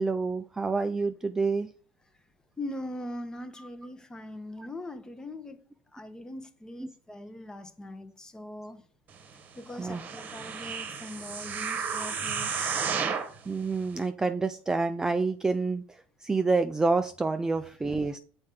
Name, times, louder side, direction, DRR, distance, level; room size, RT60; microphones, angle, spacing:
voice 1, 0.0-1.7 3.6-3.7 4.6-4.7 9.7-10.1 13.5-15.8 16.2-18.2, right 3 dB, 15° right, 0.4 m, -28 dB
voice 2, 2.6-5.6 5.9-8.8 9.6-12.8, left 1 dB, 15° left, 0.8 m, -41 dB
sound 1, 9.8-13.4 14.0-14.1, right 6 dB, 40° right, 1.0 m, -32 dB
7.2 x 4.4 x 3.7 m
supercardioid pair, 110°, 5 cm